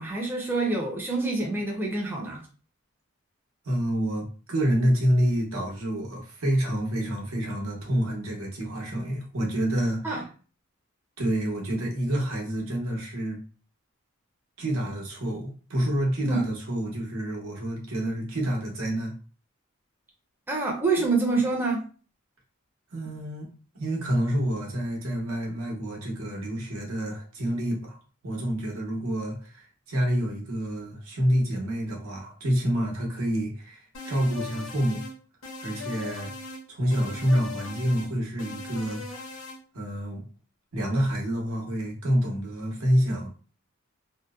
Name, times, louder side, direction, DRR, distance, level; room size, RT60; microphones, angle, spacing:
voice 1, 0.0-2.4 10.0-10.2 16.3-16.4 20.5-21.8, right 3 dB, 10° right, 0.4 m, -26 dB
voice 2, 3.6-10.2 11.2-13.4 14.6-19.1 22.9-23.5 23.7-28.0 28.2-35.0 35.6-36.3 36.7-39.0 39.7-40.3 40.7-43.3, equal, 85° right, 0.8 m, -28 dB
sound 1, 33.9-35.1 35.4-36.6 36.9-38.1 38.4-39.6, left 3 dB, 75° left, 0.8 m, -39 dB
2.7 x 2.0 x 2.2 m
head